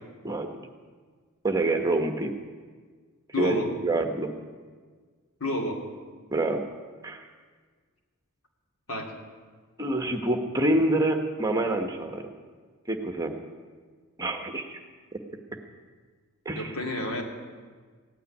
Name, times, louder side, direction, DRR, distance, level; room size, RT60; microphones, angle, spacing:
voice 1, 1.4-2.3 3.4-3.6 3.8-4.3 6.3-6.6 7.0-7.2 9.8-12.2 12.9-13.3 14.2-14.8 16.4-16.7, right 2 dB, 15° right, 5 dB, 1.1 m, -26 dB
voice 2, 3.3-3.7 5.4-5.8 8.9-9.1 16.5-17.2, left 1 dB, 75° left, 1 dB, 2.5 m, -30 dB
16.0 x 9.1 x 9.8 m, 1.5 s
head